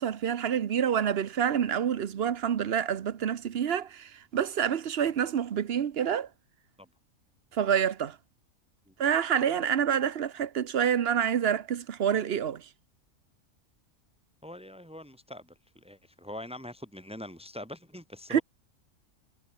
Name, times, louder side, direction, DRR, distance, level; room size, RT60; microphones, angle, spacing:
voice 1, 0.0-6.3 7.5-8.2 9.0-12.6 18.3-18.4, right 8 dB, 55° right, 1.0 m, -27 dB
voice 2, 14.4-15.5 15.7-18.4, left 1 dB, 5° right, 3.2 m, -43 dB
omnidirectional pair, 1.4 m